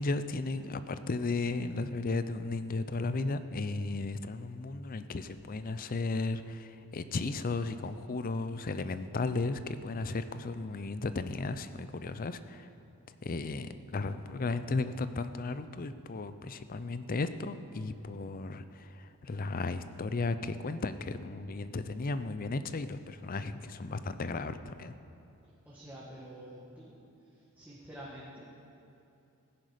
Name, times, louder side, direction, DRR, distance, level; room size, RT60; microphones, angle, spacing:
voice 1, 0.0-12.7 13.2-24.9, left 3 dB, 40° left, 12 dB, 0.5 m, -35 dB
voice 2, 25.6-27.0 27.5-28.4, right 1 dB, 10° right, -7 dB, 1.6 m, -47 dB
16.0 x 10.0 x 5.1 m, 2.8 s
head